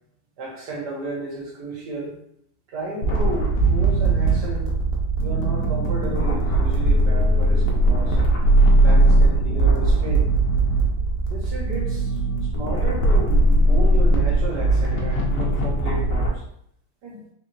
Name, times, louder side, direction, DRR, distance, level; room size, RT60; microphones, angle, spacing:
voice 1, 0.4-2.2 2.7-4.8 5.2-8.2 8.8-10.3 11.3-12.2 12.5-16.4 17.0-17.2, right 2 dB, 75° right, -3 dB, 1.8 m, -33 dB
sound 1, 3.0-16.3, right 2 dB, 65° left, 1.3 m, -19 dB
4.2 x 2.9 x 3.0 m, 0.70 s
omnidirectional pair, 1.8 m